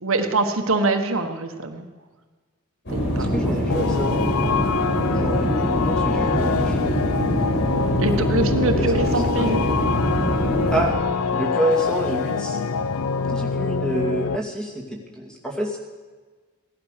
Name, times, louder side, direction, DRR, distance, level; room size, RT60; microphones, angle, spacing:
voice 1, 0.0-1.9 2.9-3.3 8.0-9.6, right 2 dB, 70° right, 6 dB, 1.3 m, -24 dB
sound 1, 2.9-10.9, equal, 55° left, 4.7 m, -24 dB
voice 2, 3.2-4.2 5.1-6.9 8.7-9.5 10.7-12.6 13.3-15.8, right 1 dB, 5° left, 0 dB, 2.3 m, -28 dB
sound 2, 3.7-14.4, left 5 dB, 90° left, 0.6 m, -25 dB
17.0 x 11.5 x 6.6 m, 1.4 s
head